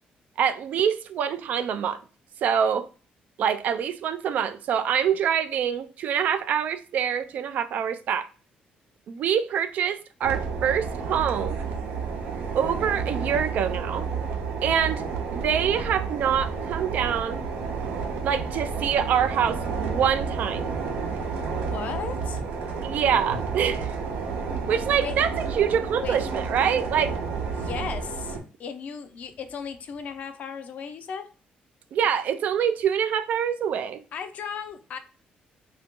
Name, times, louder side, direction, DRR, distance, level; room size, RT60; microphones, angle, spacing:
voice 1, 0.4-2.0 2.4-2.9 3.4-8.3 9.1-11.6 12.5-14.1 14.6-15.1 15.3-17.4 18.2-20.8 22.8-24.0 24.7-27.1 31.9-34.0, right 8 dB, 60° right, 0.3 m, -25 dB
sound 1, 10.2-28.4, right 5 dB, 90° right, 0.8 m, -31 dB
voice 2, 21.7-22.4 25.0-25.2 26.0-26.2 27.5-31.3 34.1-35.0, left 6 dB, 55° left, 0.5 m, -36 dB
2.9 x 2.6 x 3.6 m
cardioid pair, 140°, 3 cm